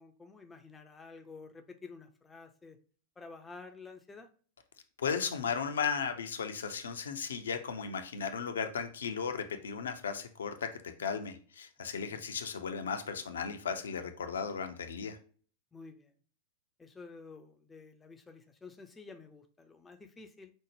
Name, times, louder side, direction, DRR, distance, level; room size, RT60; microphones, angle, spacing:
voice 1, 0.0-2.8 3.2-4.3 11.8-12.2 15.7-16.1 16.8-20.5, left 4 dB, 15° left, 6 dB, 0.5 m, -51 dB
voice 2, 5.0-10.7 11.0-15.2, left 6 dB, 65° left, 8 dB, 0.5 m, -35 dB
5.1 x 2.1 x 3.2 m, 0.42 s
figure-of-eight pair, 90°, 0 cm